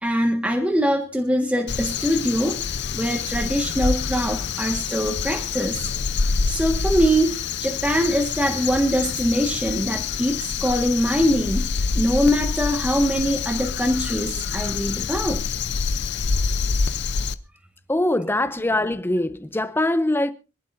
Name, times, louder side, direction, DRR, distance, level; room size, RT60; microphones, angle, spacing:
voice 1, 0.0-2.6 2.9-5.9 6.5-7.3 7.6-11.7 11.9-15.4, equal, 5° right, 1.4 m, -23 dB
Crow, 1.7-17.3, left 5 dB, 55° left, 0.6 m, -26 dB
voice 2, 17.9-20.3, left 1 dB, 10° left, 0.7 m, -22 dB
25.5 x 11.5 x 2.6 m
head